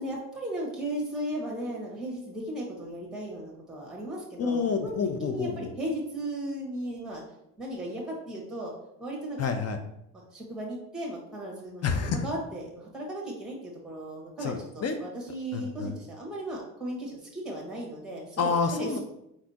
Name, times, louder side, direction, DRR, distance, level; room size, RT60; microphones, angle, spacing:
voice 1, 0.0-4.9 5.2-7.2 7.6-8.7 9.0-9.4 10.3-11.8 12.2-19.0, right 1 dB, ahead, -3 dB, 1.7 m, -36 dB
voice 2, 4.4-5.7 9.4-9.8 11.8-12.3 14.4-15.0 15.5-15.9 18.4-19.0, left 5 dB, 45° left, 7 dB, 0.6 m, -28 dB
4.3 x 4.1 x 2.8 m, 0.80 s
supercardioid pair, 70°, 37 cm